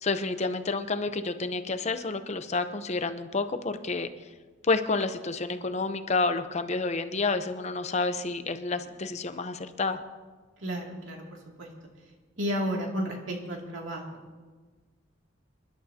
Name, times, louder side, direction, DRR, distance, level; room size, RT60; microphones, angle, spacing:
voice 1, 0.0-4.1 4.6-10.0, left 3 dB, 35° left, 10 dB, 0.7 m, -29 dB
voice 2, 10.6-11.2 11.6-11.7 12.4-14.0, equal, 80° right, 0 dB, 2.5 m, -32 dB
27.0 x 11.5 x 2.8 m, 1.4 s
head